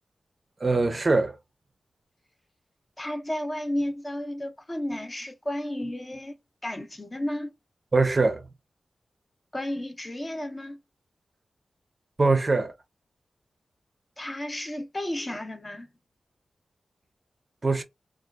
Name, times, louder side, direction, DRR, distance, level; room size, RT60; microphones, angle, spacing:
voice 1, 0.6-1.4 7.9-8.5 12.2-12.7 17.6-17.8, right 3 dB, 35° right, 0.5 m, -22 dB
voice 2, 3.0-6.4 6.6-7.5 9.5-10.8 14.2-15.9, left 1 dB, 25° left, 0.5 m, -32 dB
2.7 x 2.3 x 2.2 m
wide cardioid pair, 85°, 0 cm